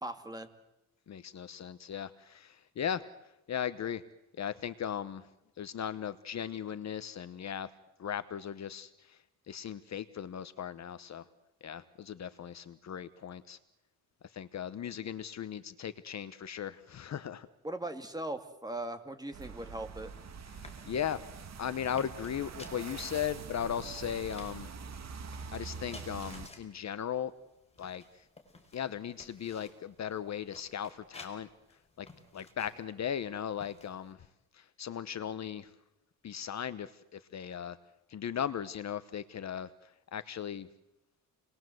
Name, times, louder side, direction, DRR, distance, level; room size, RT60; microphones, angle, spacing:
voice 1, 0.0-0.5 17.6-20.1, right 1 dB, 10° right, 7 dB, 2.3 m, -39 dB
voice 2, 1.1-3.1 3.5-4.0 4.4-5.3 5.6-7.7 8.0-9.2 9.5-11.3 11.6-13.6 14.3-17.5 20.6-21.2 21.6-24.7 25.5-27.3 27.8-28.0 28.7-31.5 32.0-32.1 32.3-34.2 34.5-35.7 36.2-37.8 38.1-39.7 40.1-40.7, left 9 dB, 45° left, 13 dB, 1.0 m, -37 dB
sound 1, 19.3-26.5, right 6 dB, 45° right, 2.0 m, -45 dB
sound 2, 20.0-34.1, left 3 dB, 15° left, 4.8 m, -56 dB
29.5 x 20.5 x 7.9 m, 0.91 s
cardioid pair, 135°, 37 cm